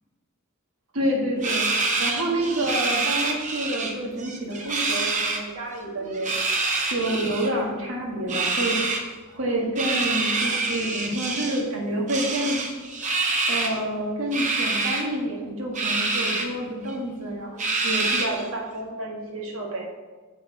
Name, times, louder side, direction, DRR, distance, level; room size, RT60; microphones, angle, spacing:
voice 1, 0.9-6.4 6.9-9.0 9.3-12.6 13.5-19.9, right 1 dB, 70° right, -1 dB, 1.6 m, -28 dB
sound 1, 1.4-3.9 4.2-5.4 6.1-7.5 8.3-9.0 9.8-11.6 12.1-13.8 14.3-15.0 15.7-16.5 16.9-17.0 17.6-18.5, right 3 dB, 35° right, 0.8 m, -26 dB
7.1 x 5.8 x 4.3 m, 1.3 s
head